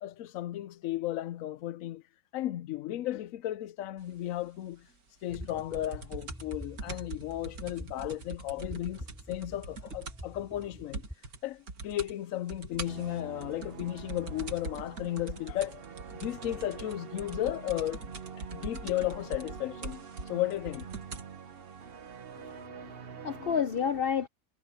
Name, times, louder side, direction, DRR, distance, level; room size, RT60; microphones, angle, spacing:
voice 1, 0.0-2.0 2.3-4.9 5.2-11.0 11.4-15.8 16.2-18.0 18.5-20.9, left 13 dB, 70° left, 0.9 m, -34 dB
sound 1, 5.3-11.2, equal, 5° right, 4.4 m, -47 dB
sound 2, 5.3-10.4 10.6-10.7 10.9-11.4 11.7-12.1 12.5-21.3 22.1-22.2, right 3 dB, 90° right, 2.5 m, -42 dB
sound 3, 12.9-23.6, right 7 dB, 45° right, 1.0 m, -46 dB
voice 2, 22.3-24.3, left 7 dB, 55° left, 0.7 m, -31 dB
omnidirectional pair, 1.5 m